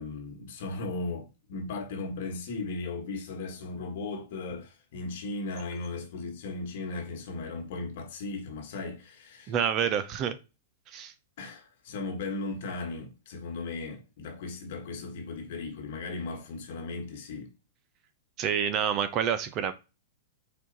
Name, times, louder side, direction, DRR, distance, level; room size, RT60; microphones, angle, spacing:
voice 1, 0.0-9.5 11.4-17.5, left 3 dB, 60° left, 1.4 m, -37 dB
voice 2, 9.5-10.4 10.9-11.1 18.4-19.7, right 8 dB, 35° right, 0.5 m, -28 dB
4.4 x 2.4 x 3.8 m
hypercardioid pair, 130°, 0 cm